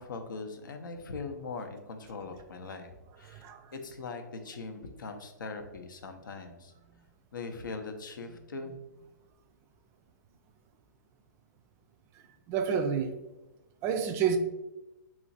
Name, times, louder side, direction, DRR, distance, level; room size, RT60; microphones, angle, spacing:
voice 1, 0.0-3.5 3.7-6.7 7.3-8.8, left 4 dB, 85° left, 6 dB, 0.6 m, -41 dB
voice 2, 3.3-3.7 12.5-13.1 13.8-14.4, right 7 dB, 25° right, 7 dB, 0.3 m, -29 dB
3.0 x 2.4 x 3.9 m, 1.0 s
hypercardioid pair, 135°, 10 cm